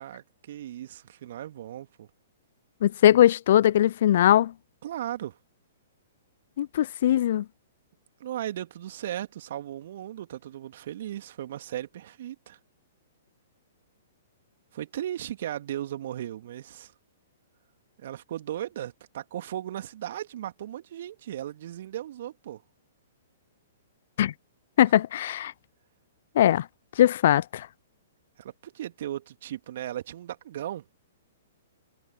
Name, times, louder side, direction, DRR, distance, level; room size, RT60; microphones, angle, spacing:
voice 1, 0.0-2.1 4.8-5.4 8.2-12.6 14.7-16.9 18.0-22.6 28.4-30.9, right 12 dB, 55° right, 2.5 m, -36 dB
voice 2, 2.8-4.5 6.6-7.4 24.2-24.3 24.8-25.5 26.4-26.7 27.0-27.7, left 11 dB, 55° left, 0.5 m, -20 dB
figure-of-eight pair, 115°, 0 cm